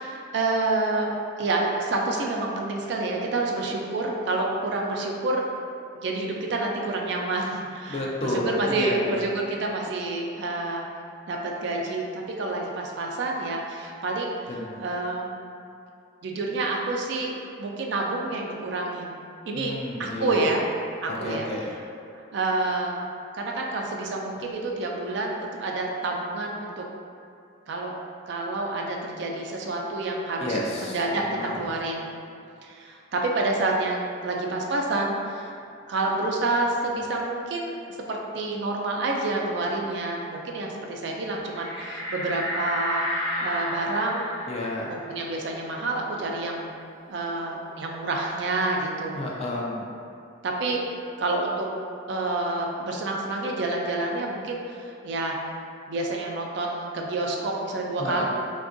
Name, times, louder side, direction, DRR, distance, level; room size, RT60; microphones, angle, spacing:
voice 1, 0.0-5.6 5.9-10.9 11.3-14.3 14.8-15.4 16.2-17.3 17.6-19.1 19.5-19.7 20.0-20.6 21.0-21.5 22.3-23.0 23.3-26.8 27.7-28.0 28.3-31.2 31.5-32.1 32.6-35.5 35.9-44.2 44.9-46.7 47.0-49.2 50.4-50.8 51.2-51.7 52.1-55.4 55.9-58.2, right 2 dB, 60° right, 0 dB, 0.3 m, -28 dB
voice 2, 7.9-9.2 14.5-14.8 19.5-20.5 21.2-21.7 30.4-31.5 44.5-45.1 49.1-49.9 58.0-58.2, left 1 dB, 30° left, -3 dB, 0.3 m, -31 dB
sound 1, 41.5-46.7 47.1-47.2 47.5-49.2, left 1 dB, 85° left, 1.0 m, -33 dB
3.5 x 2.3 x 2.5 m, 2.5 s
head